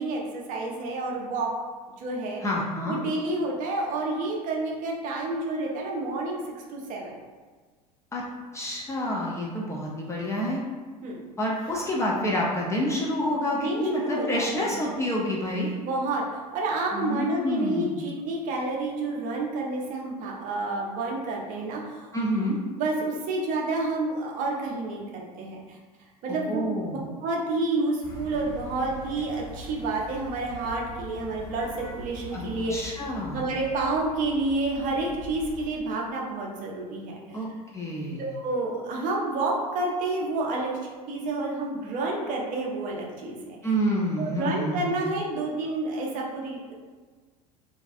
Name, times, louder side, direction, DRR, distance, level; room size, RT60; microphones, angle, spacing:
voice 1, 0.0-1.5 2.0-2.4 2.9-6.4 6.7-7.2 11.0-11.2 13.5-14.8 15.8-22.2 22.8-25.8 26.2-26.7 27.2-32.7 33.3-37.2 38.2-40.8 41.1-43.6 44.2-46.7, right 2 dB, 40° right, -1 dB, 0.5 m, -29 dB
voice 2, 2.4-3.0 8.1-8.2 8.5-10.6 11.4-15.8 16.9-18.0 22.1-22.6 26.3-27.0 32.3-33.5 37.3-37.5 37.7-38.2 43.6-45.1, equal, 15° left, -4 dB, 0.3 m, -28 dB
sound 1, 28.0-35.7, equal, 55° left, 1.2 m, -42 dB
2.4 x 2.3 x 2.3 m, 1.4 s
figure-of-eight pair, 70°, 21 cm